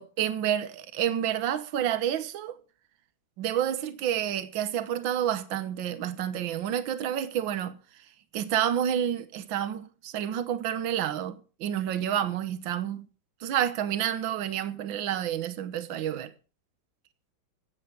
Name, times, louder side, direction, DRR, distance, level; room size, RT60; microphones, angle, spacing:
voice 1, 0.0-2.6 3.4-7.8 8.3-13.1 13.4-16.3, right 10 dB, 75° right, 1.8 m, -29 dB
15.0 x 8.7 x 6.8 m
omnidirectional pair, 2.1 m